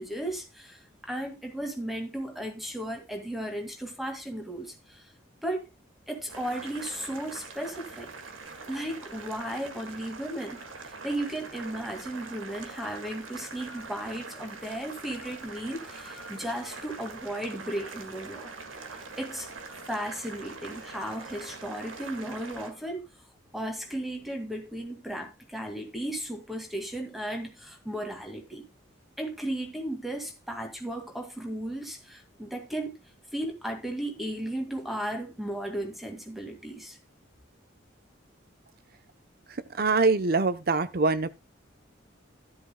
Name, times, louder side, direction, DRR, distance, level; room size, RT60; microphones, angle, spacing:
voice 1, 0.0-5.1 5.4-5.7 6.1-8.1 8.7-18.5 19.2-23.0 23.5-28.6 29.2-32.9 33.3-37.0, right 1 dB, ahead, 2.0 m, -35 dB
Boiling, 6.3-22.7, right 4 dB, 85° right, 1.9 m, -43 dB
voice 2, 39.8-41.3, right 3 dB, 50° right, 0.7 m, -24 dB
12.5 x 10.5 x 2.2 m
head